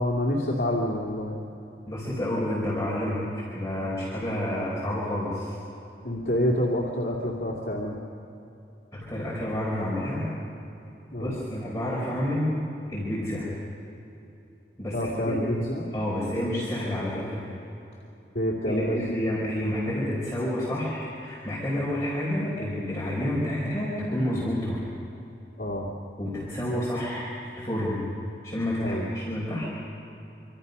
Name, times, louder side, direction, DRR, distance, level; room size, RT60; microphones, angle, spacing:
voice 1, 0.0-1.4 6.0-8.0 11.1-11.3 14.9-15.9 18.3-19.2 25.6-25.9 28.8-29.1, left 1 dB, 60° left, -3 dB, 2.7 m, -27 dB
voice 2, 1.9-5.5 8.9-10.3 11.2-12.6 12.9-13.5 14.8-15.4 15.9-17.5 18.6-24.8 26.2-28.0 28.4-29.6, left 1 dB, 20° left, -7 dB, 4.8 m, -29 dB
26.5 x 26.0 x 5.6 m, 2.8 s
head